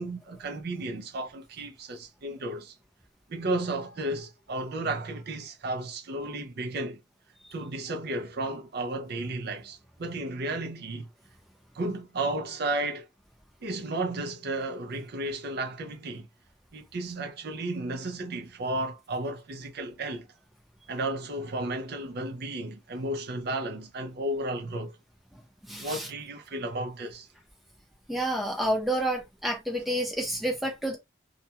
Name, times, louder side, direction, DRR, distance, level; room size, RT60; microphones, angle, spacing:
voice 1, 0.0-2.7 3.3-7.0 7.5-11.1 11.7-13.1 13.6-16.3 16.7-20.3 20.9-25.0 25.8-27.3, right 2 dB, 50° right, 0.4 m, -33 dB
voice 2, 25.7-26.1 28.1-31.0, right 1 dB, ahead, 0.6 m, -29 dB
2.3 x 2.2 x 2.7 m
head